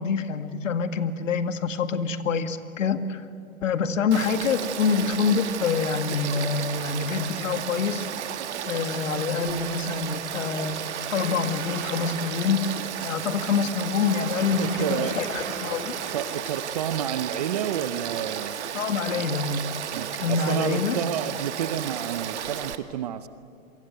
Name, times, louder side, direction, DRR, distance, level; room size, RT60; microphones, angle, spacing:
voice 1, 0.0-3.2 3.6-8.1 8.7-15.9 18.7-19.6 20.2-21.0, left 5 dB, 60° left, 9 dB, 2.0 m, -26 dB
Frog / Stream, 4.1-22.8, right 9 dB, 50° right, 1.8 m, -33 dB
Waves surf, 4.8-22.7, right 5 dB, 70° right, 4.1 m, -44 dB
voice 2, 14.6-15.2 16.1-18.6 19.1-19.2 19.9-23.3, right 9 dB, 30° right, 13 dB, 0.7 m, -30 dB
28.5 x 24.0 x 8.0 m, 2.4 s
hypercardioid pair, 150°, 42 cm